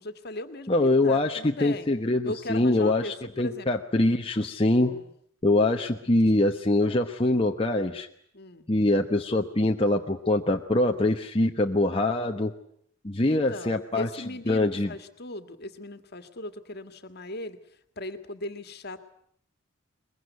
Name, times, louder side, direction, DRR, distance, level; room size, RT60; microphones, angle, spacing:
voice 1, 0.0-1.9 2.2-3.7 4.7-5.1 8.3-8.7 13.2-17.6 18.0-19.0, left 1 dB, 50° left, 9 dB, 1.8 m, -38 dB
voice 2, 0.7-4.9 5.4-8.1 8.7-12.5 13.0-14.1 14.5-14.9, left 2 dB, 25° left, 3 dB, 1.0 m, -24 dB
22.5 x 22.0 x 9.3 m, 0.68 s
head